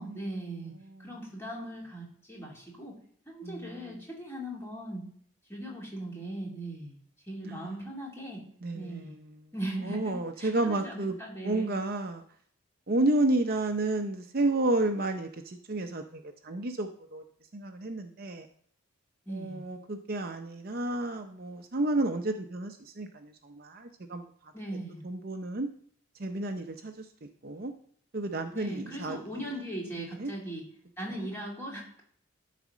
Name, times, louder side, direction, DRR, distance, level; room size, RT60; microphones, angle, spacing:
voice 1, 0.0-0.7 1.0-3.0 3.3-5.1 5.5-7.0 7.3-8.4 8.7-9.1 9.5-11.7 19.3-19.6 24.5-25.0 28.5-30.6 31.0-32.0, right 1 dB, 10° left, -3 dB, 2.6 m, -39 dB
voice 2, 0.6-1.1 3.4-3.8 7.4-7.8 8.6-9.4 9.8-11.1 11.4-12.2 12.9-17.2 17.5-18.5 19.3-24.2 25.0-25.7 26.2-27.7 28.1-29.4 29.9-30.3 31.2-31.3, right 2 dB, 45° right, 6 dB, 0.6 m, -31 dB
12.0 x 4.2 x 6.1 m, 0.62 s
head